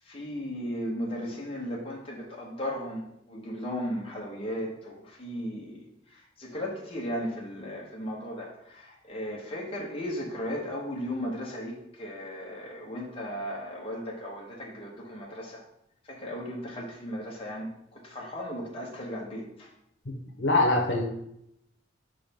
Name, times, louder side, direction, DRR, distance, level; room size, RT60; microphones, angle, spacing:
voice 1, 0.1-5.8 6.4-11.7 12.0-15.6 16.1-17.7 18.0-19.7, equal, 30° left, -3 dB, 1.2 m, -36 dB
voice 2, 20.4-21.0, left 2 dB, 65° left, 0 dB, 1.1 m, -23 dB
5.7 x 3.8 x 5.2 m, 0.77 s
head